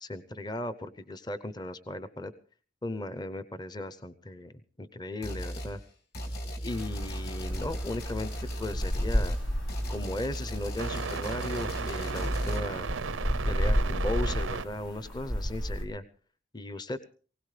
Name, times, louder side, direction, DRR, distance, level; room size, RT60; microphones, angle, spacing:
voice 1, 0.0-2.3 2.8-4.5 4.8-5.8 6.6-8.3 8.6-9.4 9.9-12.9 13.5-16.0 16.5-17.0, left 1 dB, 20° left, 13 dB, 0.7 m, -36 dB
sound 1, 5.2-5.8 6.1-12.6, equal, 55° left, 3.6 m, -36 dB
sound 2, 6.7-15.8, equal, 80° left, 3.9 m, -33 dB
sound 3, 9.3-14.7, right 5 dB, 90° right, 0.6 m, -36 dB
20.0 x 17.5 x 3.3 m, 0.39 s
head